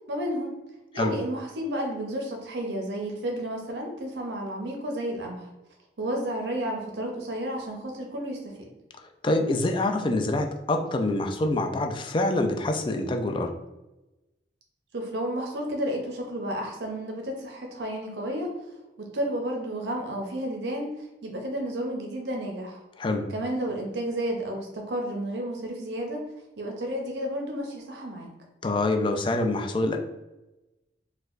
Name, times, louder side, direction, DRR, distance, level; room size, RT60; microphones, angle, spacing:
voice 1, 0.1-0.5 0.9-5.5 6.0-8.7 14.9-18.5 19.0-20.9 21.2-22.8 23.3-26.2 26.6-28.3, right 1 dB, 75° right, 1 dB, 0.6 m, -31 dB
voice 2, 9.2-13.5 23.0-23.3 28.6-30.0, left 2 dB, 30° left, 4 dB, 0.3 m, -25 dB
4.4 x 2.2 x 2.4 m, 1.0 s
head